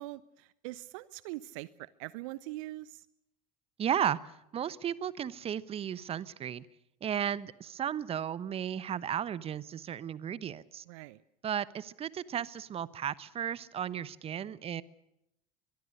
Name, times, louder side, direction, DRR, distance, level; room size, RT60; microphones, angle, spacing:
voice 1, 0.0-3.1 10.9-11.2, right 18 dB, 60° right, 19 dB, 0.8 m, -43 dB
voice 2, 3.8-4.2 4.5-6.7 7.0-10.8 11.4-14.8, right 9 dB, 30° right, 18 dB, 1.1 m, -34 dB
23.5 x 23.0 x 6.6 m, 0.83 s
figure-of-eight pair, 75°, 19 cm